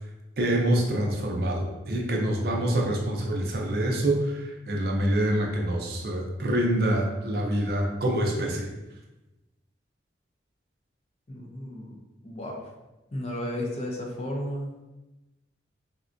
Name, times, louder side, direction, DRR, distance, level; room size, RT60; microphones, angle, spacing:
voice 1, 0.4-8.7, right 1 dB, 55° right, 0 dB, 0.5 m, -26 dB
voice 2, 11.3-12.0 12.2-12.7 13.1-14.7, left 1 dB, 35° left, 0 dB, 0.4 m, -33 dB
3.6 x 2.2 x 2.5 m, 1.0 s
head